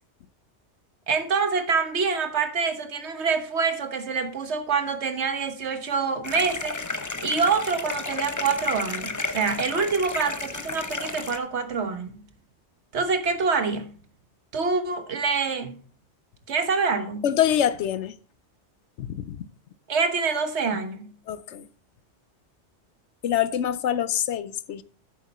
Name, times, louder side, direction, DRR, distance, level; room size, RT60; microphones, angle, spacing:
voice 1, 1.1-6.8 7.2-12.2 12.9-13.9 14.5-15.8 16.5-17.3 19.9-21.1, right 5 dB, 70° right, 1.4 m, -26 dB
sound 1, 6.2-11.4, left 3 dB, 20° left, 0.5 m, -32 dB
voice 2, 17.2-18.2 19.0-19.4 21.3-21.7 23.2-24.8, left 10 dB, 85° left, 1.0 m, -25 dB
8.7 x 7.4 x 4.2 m
omnidirectional pair, 1.2 m